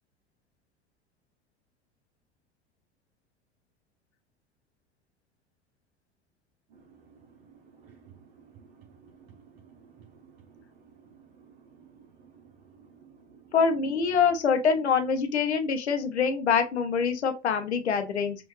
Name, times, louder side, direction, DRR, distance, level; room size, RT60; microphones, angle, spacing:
voice 1, 7.1-8.2 8.6-9.5 10.0-10.1 10.5-10.6 11.1-12.1 12.8-13.1, right 6 dB, 65° right, 0.8 m, -55 dB
voice 2, 13.5-18.4, left 6 dB, 90° left, 0.7 m, -25 dB
5.7 x 2.5 x 3.1 m
hypercardioid pair, 75°, 33 cm